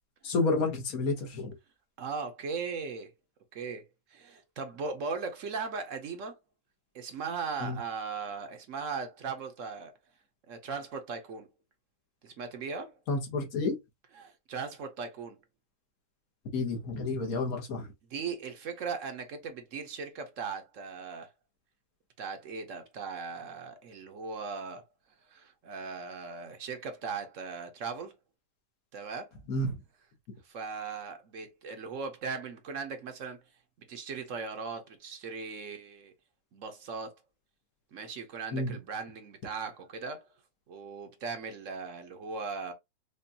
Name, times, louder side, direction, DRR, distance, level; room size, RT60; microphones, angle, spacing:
voice 1, 0.2-1.5 7.6-7.8 13.1-13.8 16.5-17.9 29.5-29.8 38.5-38.8, left 3 dB, 70° left, 1.5 m, -30 dB
voice 2, 2.0-3.1 3.5-3.8 4.1-6.4 6.9-9.9 10.5-11.5 12.2-13.0 14.1-15.4 18.1-21.3 22.2-24.8 25.3-28.1 28.9-29.3 30.4-33.4 33.8-36.1 36.5-37.1 37.9-40.3 40.7-42.7, right 5 dB, 60° right, 1.0 m, -38 dB
5.1 x 2.3 x 2.7 m
omnidirectional pair, 1.6 m